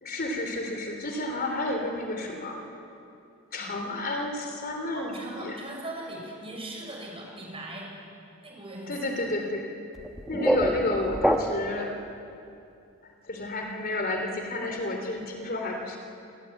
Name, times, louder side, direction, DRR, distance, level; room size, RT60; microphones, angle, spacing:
voice 1, 0.0-2.6 3.5-5.6 8.9-9.7 10.3-12.0 13.2-16.0, left 2 dB, 45° left, 3 dB, 3.0 m, -31 dB
voice 2, 4.9-7.9 8.4-9.0, right 1 dB, 25° right, -1 dB, 6.9 m, -39 dB
sound 1, 10.0-11.9, equal, ahead, 1.2 m, -26 dB
27.0 x 19.5 x 8.9 m, 2.6 s
head